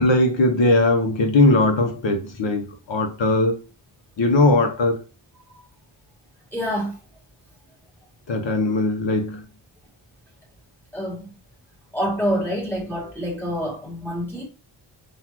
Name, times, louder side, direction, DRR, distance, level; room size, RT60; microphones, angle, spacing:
voice 1, 0.0-3.6 4.2-5.0 8.3-9.4, left 2 dB, 65° left, 1.0 m, -19 dB
voice 2, 6.5-7.0 10.9-11.3 11.9-14.4, equal, 5° left, 1.8 m, -26 dB
5.9 x 2.6 x 3.0 m
wide cardioid pair, 130°, 49 cm